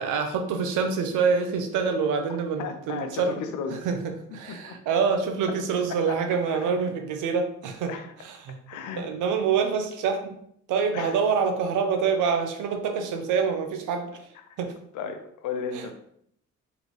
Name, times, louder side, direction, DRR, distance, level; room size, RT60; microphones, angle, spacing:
voice 1, 0.0-3.4 3.8-7.9 8.2-8.6 8.9-10.4 10.7-14.2 14.6-14.7 15.7-15.8, right 5 dB, 85° right, 6 dB, 0.7 m, -26 dB
voice 2, 2.6-3.9 4.5-4.8 5.9-6.7 7.9-8.1 8.7-9.1 10.9-11.2 14.5-14.6 14.9-15.9, left 5 dB, 85° left, 7 dB, 0.7 m, -35 dB
3.9 x 3.3 x 3.1 m, 0.69 s
cardioid pair, 90°, 30 cm